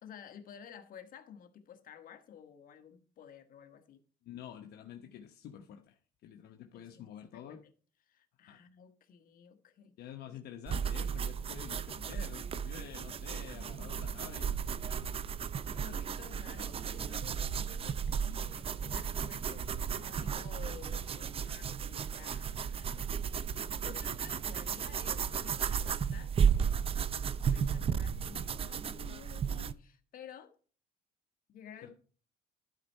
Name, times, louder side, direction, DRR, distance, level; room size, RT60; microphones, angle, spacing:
voice 1, 0.0-4.0 6.7-7.6 8.1-10.0 10.3-10.4 12.2-12.3 12.7-12.9 13.5-14.3 15.8-19.6 19.9-23.0 23.8-26.3 27.5-30.5 31.5-31.9, left 8 dB, 55° left, 1.4 m, -53 dB
voice 2, 4.2-7.6 8.5-8.6 10.0-15.3 15.7-15.8 31.8-31.9, left 9 dB, 70° left, 1.0 m, -49 dB
sound 1, 10.7-29.7, right 7 dB, 35° right, 0.5 m, -34 dB
12.0 x 4.5 x 5.5 m
cardioid pair, 110°, 17 cm